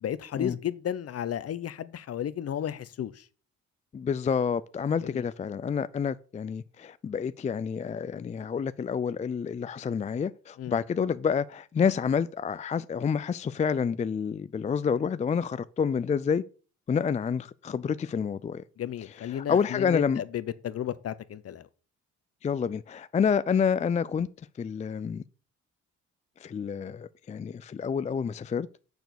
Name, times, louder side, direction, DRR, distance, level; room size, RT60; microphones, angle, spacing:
voice 1, 0.0-3.2 5.0-5.3 10.6-10.8 18.8-21.7, left 10 dB, 50° left, 0.8 m, -33 dB
voice 2, 3.9-16.4 16.9-18.6 19.3-20.2 22.4-24.3 24.6-25.2 26.4-28.7, left 6 dB, 25° left, 0.3 m, -28 dB
6.9 x 6.2 x 6.8 m
cardioid pair, 90°, 30 cm